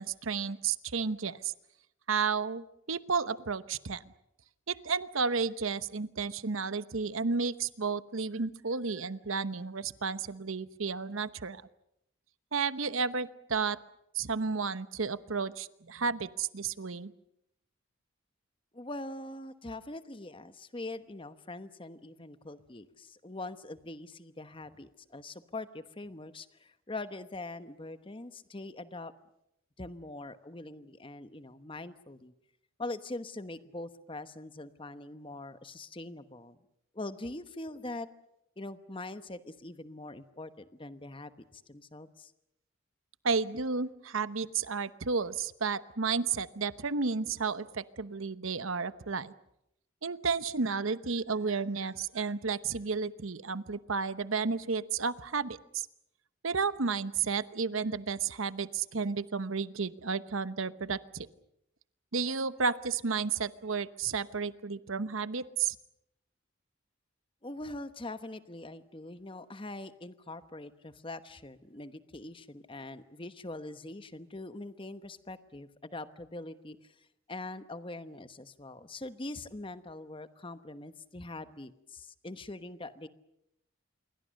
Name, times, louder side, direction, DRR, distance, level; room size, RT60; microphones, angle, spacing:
voice 1, 0.0-1.5 2.1-4.0 4.7-11.6 12.5-13.8 14.1-17.1 43.2-49.3 50.0-55.9 56.4-61.3 62.1-65.8, right 5 dB, 80° right, 14 dB, 1.0 m, -32 dB
voice 2, 18.7-29.1 29.8-32.3 32.8-36.6 36.9-38.1 38.6-42.3 67.4-83.1, left 2 dB, 25° left, 11 dB, 1.1 m, -43 dB
27.5 x 23.0 x 6.5 m, 0.80 s
head